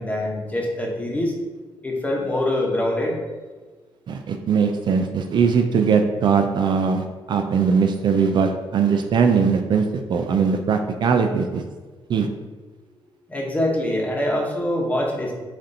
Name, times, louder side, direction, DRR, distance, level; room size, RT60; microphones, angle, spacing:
voice 1, 0.0-1.3 1.8-3.1 13.3-15.3, left 1 dB, 15° left, -1 dB, 1.0 m, -24 dB
voice 2, 4.1-11.6 12.1-12.3, right 6 dB, 55° right, 6 dB, 0.4 m, -20 dB
7.3 x 2.6 x 2.7 m, 1.3 s
cardioid pair, 110°, 9 cm